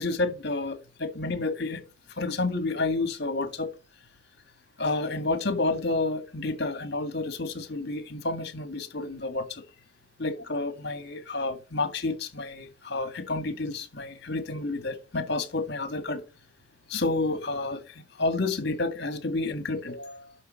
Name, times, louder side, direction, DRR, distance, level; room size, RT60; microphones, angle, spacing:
voice 1, 0.0-1.8 2.2-3.7 4.8-9.6 10.2-16.2 16.9-20.3, left 2 dB, 55° left, 2.0 m, -30 dB
11.0 x 6.4 x 5.2 m
head